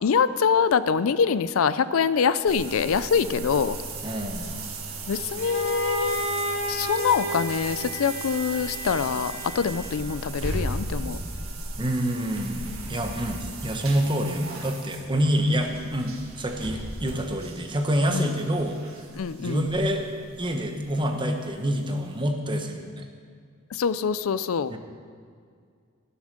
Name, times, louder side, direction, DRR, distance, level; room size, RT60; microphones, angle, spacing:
voice 1, 0.0-3.8 5.1-6.2 6.7-11.2 18.1-18.3 19.2-19.7 23.7-24.7, left 6 dB, 75° left, 15 dB, 0.4 m, -24 dB
sound 1, 2.5-21.1 21.4-21.5 22.0-22.1, right 2 dB, 80° right, 1.8 m, -37 dB
voice 2, 4.0-4.5 9.7-9.8 11.8-18.8 19.4-20.0 20.4-23.0 24.7-24.8, equal, 20° right, 4 dB, 1.1 m, -27 dB
Bowed string instrument, 5.4-10.2, left 1 dB, 30° left, 2.9 m, -32 dB
14.5 x 7.1 x 6.6 m, 2.2 s
head